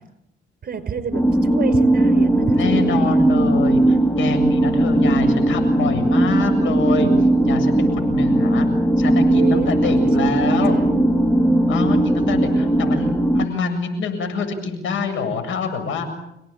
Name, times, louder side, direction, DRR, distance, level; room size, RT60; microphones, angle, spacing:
voice 1, 0.6-3.2 9.3-11.0 12.4-13.2, right 6 dB, 50° right, 12 dB, 5.1 m, -30 dB
sound 1, 1.1-13.5, right 1 dB, 10° left, 2.8 m, -18 dB
voice 2, 2.5-8.7 9.0-10.8 11.7-16.1, left 4 dB, 75° left, 7 dB, 7.7 m, -26 dB
30.0 x 18.5 x 8.9 m, 0.83 s
cardioid pair, 90°, 20 cm